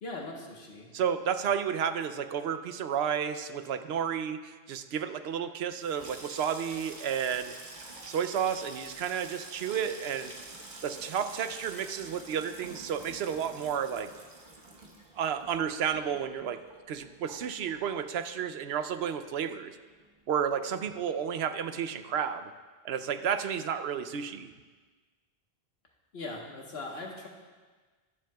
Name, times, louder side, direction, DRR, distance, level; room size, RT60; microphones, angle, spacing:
voice 1, 0.0-0.9 26.1-27.3, left 2 dB, 75° left, 0 dB, 1.5 m, -40 dB
voice 2, 0.9-7.5 8.0-10.3 10.8-14.1 15.2-16.6 16.9-19.7 20.3-22.5 22.8-24.5, right 8 dB, 80° right, 11 dB, 0.8 m, -32 dB
Water tap faucet / Sink (filling or washing), 5.7-18.5 18.8-19.5 19.7-20.1, right 2 dB, 50° right, 1.2 m, -48 dB
22.5 x 7.6 x 2.3 m, 1.4 s
omnidirectional pair, 1.1 m